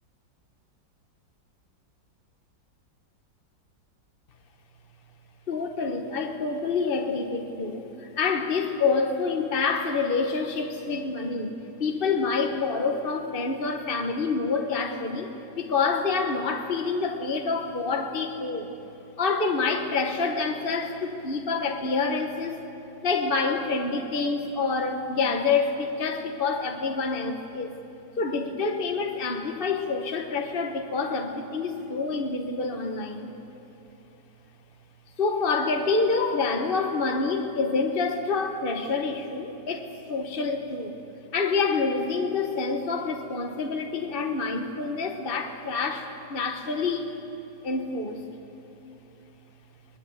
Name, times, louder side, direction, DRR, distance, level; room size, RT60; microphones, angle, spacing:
voice 1, 5.5-18.7 19.2-22.7 23.0-27.8 28.2-33.3 35.2-41.0 41.3-47.1 47.6-48.2, left 4 dB, 35° left, 4 dB, 1.2 m, -27 dB
21.5 x 20.5 x 8.0 m, 3.0 s
omnidirectional pair, 2.0 m